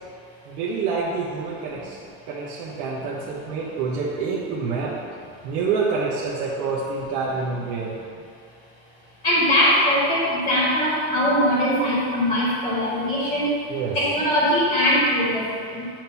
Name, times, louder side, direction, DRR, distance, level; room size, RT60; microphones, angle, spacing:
voice 1, 0.5-2.0 2.3-5.0 5.4-8.0 13.7-14.0, right 4 dB, 90° right, -6 dB, 1.1 m, -27 dB
voice 2, 9.2-13.6 13.9-15.9, equal, 10° left, -6 dB, 1.1 m, -21 dB
8.9 x 3.0 x 5.4 m, 2.4 s
cardioid pair, 175°, 41 cm